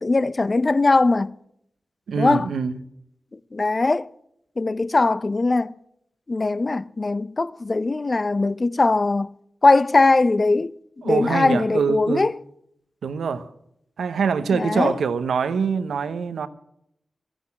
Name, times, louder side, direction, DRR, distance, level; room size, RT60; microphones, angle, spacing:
voice 1, 0.0-1.3 2.2-2.5 3.3-4.1 4.6-5.7 6.3-9.3 9.6-10.7 11.0-12.4 14.5-15.0, left 3 dB, 45° left, 0.6 m, -20 dB
voice 2, 2.1-2.8 11.0-12.3 13.0-13.5 14.0-16.5, right 5 dB, 90° right, 0.9 m, -24 dB
14.0 x 10.0 x 8.6 m
cardioid pair, 40°, 0 cm